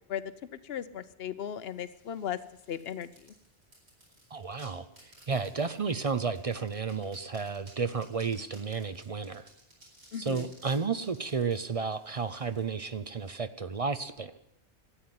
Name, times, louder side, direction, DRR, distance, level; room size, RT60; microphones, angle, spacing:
voice 1, 0.6-2.4 2.7-3.3 10.1-10.5, left 9 dB, 65° left, 14 dB, 1.0 m, -36 dB
sound 1, 1.4-13.3, right 1 dB, 75° right, 4.7 m, -59 dB
voice 2, 4.3-4.9 5.3-9.5 10.2-14.4, right 5 dB, 40° right, 11 dB, 0.6 m, -32 dB
13.0 x 9.1 x 9.6 m, 0.82 s
omnidirectional pair, 1.1 m